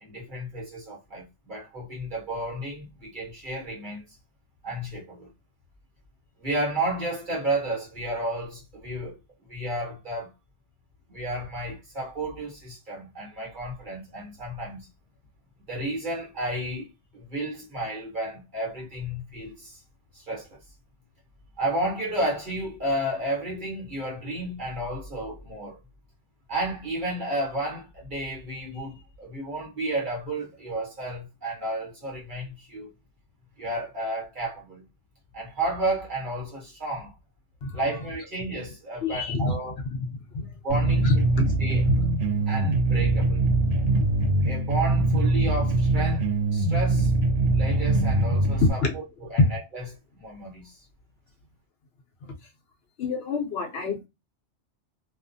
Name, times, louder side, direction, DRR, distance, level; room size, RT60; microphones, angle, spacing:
voice 1, 0.0-4.0 4.6-5.3 6.4-9.2 9.5-10.3 11.1-14.8 15.7-19.8 20.1-20.6 21.6-25.8 26.5-32.9 33.6-34.8 35.3-37.1 37.7-39.8 40.6-41.8 42.5-43.5 44.5-46.3 46.5-47.1 47.5-49.0 49.3-49.8 50.1-50.9, right 1 dB, 45° right, 1.2 m, -32 dB
voice 2, 39.0-39.6 39.9-40.1 40.3-40.4 41.0-41.2 41.8-42.0 42.3-42.4 48.8-48.9 52.2-52.3 53.0-54.1, left 3 dB, 65° left, 0.8 m, -28 dB
sound 1, 40.7-48.7, right 2 dB, 85° right, 1.0 m, -23 dB
2.4 x 2.4 x 2.5 m
omnidirectional pair, 1.2 m